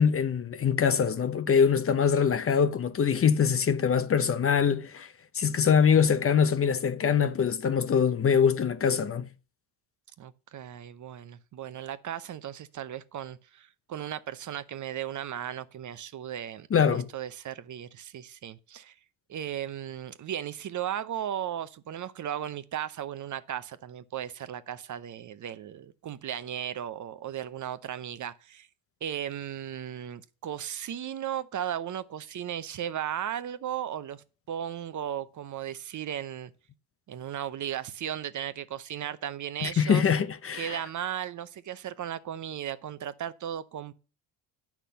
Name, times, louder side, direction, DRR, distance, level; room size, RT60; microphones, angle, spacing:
voice 1, 0.0-5.1 5.3-9.3 16.7-17.1 39.6-40.8, left 7 dB, 30° left, 0.7 m, -23 dB
voice 2, 10.2-18.9 19.3-28.7 29.0-36.5 37.1-40.1 40.5-43.9, right 10 dB, 45° right, 0.8 m, -36 dB
8.3 x 6.0 x 6.8 m
supercardioid pair, 85°, 43 cm